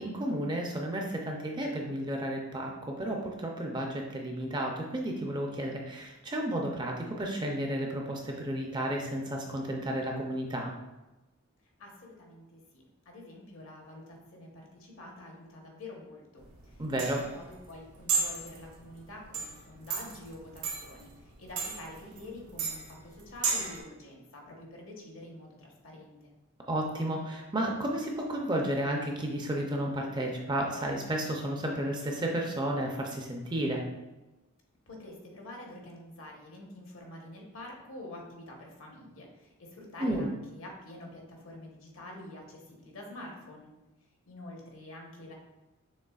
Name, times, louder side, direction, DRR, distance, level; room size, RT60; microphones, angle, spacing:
voice 1, 0.0-10.7 16.8-17.2 26.7-33.8 40.0-40.3, right 1 dB, 20° right, 0 dB, 0.5 m, -32 dB
voice 2, 11.8-26.3 34.9-43.7 44.3-45.3, left 1 dB, 65° left, 0 dB, 1.0 m, -47 dB
sound 1, 16.4-23.8, right 5 dB, 80° right, 0.9 m, -35 dB
6.4 x 3.3 x 2.3 m, 1.0 s
head